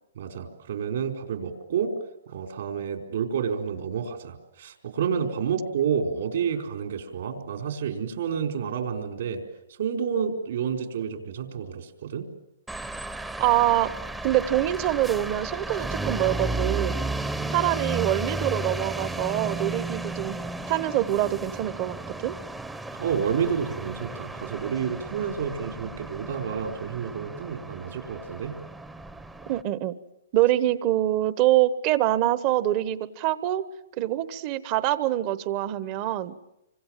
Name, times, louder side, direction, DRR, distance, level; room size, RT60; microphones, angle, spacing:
voice 1, 0.2-1.9 2.3-9.4 9.8-12.3 22.9-28.5, right 7 dB, 65° right, 4 dB, 4.3 m, -29 dB
sound 1, 12.7-29.6, right 2 dB, 5° right, 0.9 m, -34 dB
voice 2, 13.4-13.9 14.2-17.0 17.5-20.4 20.7-22.0 22.2-22.3 29.5-29.9 30.3-33.6 34.0-36.3, right 14 dB, 35° right, 15 dB, 1.1 m, -25 dB
27.0 x 25.0 x 7.5 m, 0.87 s
hypercardioid pair, 155°, 0 cm